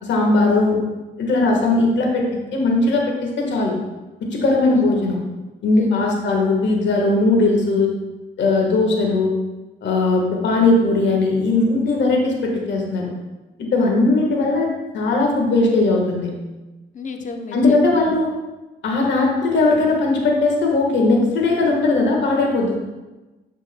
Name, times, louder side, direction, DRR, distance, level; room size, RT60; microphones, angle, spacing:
voice 1, 0.0-0.8 1.2-2.3 2.5-3.7 4.2-5.2 5.6-7.9 8.4-9.3 9.8-13.1 13.7-14.7 14.9-16.3 17.5-18.3 18.8-22.8, left 2 dB, 65° left, 0 dB, 1.4 m, -18 dB
voice 2, 5.7-6.4 16.9-18.2, left 3 dB, 40° left, 5 dB, 0.7 m, -34 dB
7.3 x 6.8 x 2.2 m, 1.1 s
cardioid pair, 90°, 20 cm